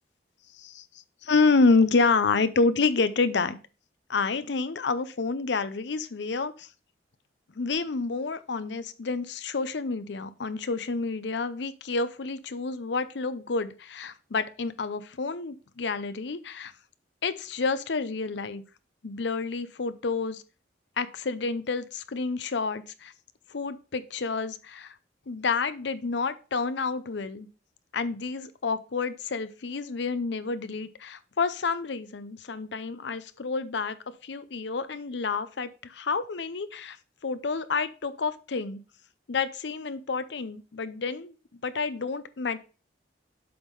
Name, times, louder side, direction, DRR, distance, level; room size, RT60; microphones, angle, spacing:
voice 1, 1.2-3.6 4.1-6.7 7.6-16.7 17.2-18.6 19.0-20.4 21.0-23.1 23.5-24.9 25.3-27.5 27.9-37.0 37.2-38.8 39.3-42.6, left 4 dB, 70° left, 13 dB, 0.6 m, -29 dB
7.7 x 3.7 x 5.4 m, 0.34 s
head